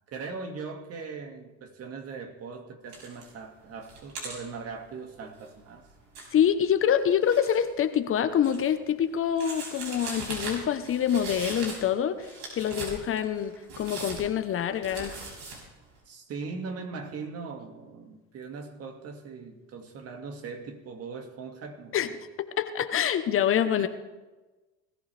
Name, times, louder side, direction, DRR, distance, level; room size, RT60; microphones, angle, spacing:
voice 1, 0.1-5.9 16.1-22.1 23.8-23.9, right 4 dB, 50° right, 5 dB, 2.3 m, -40 dB
sound 1, 2.9-3.3 3.7-7.7 8.1-8.9 9.4-11.9 12.2-15.6, right 3 dB, 80° right, 5.7 m, -40 dB
voice 2, 6.3-12.3 12.5-15.2 21.9-22.1 22.6-23.9, left 9 dB, 45° left, 9 dB, 1.0 m, -26 dB
20.5 x 14.5 x 3.5 m, 1.2 s
supercardioid pair, 95°, 31 cm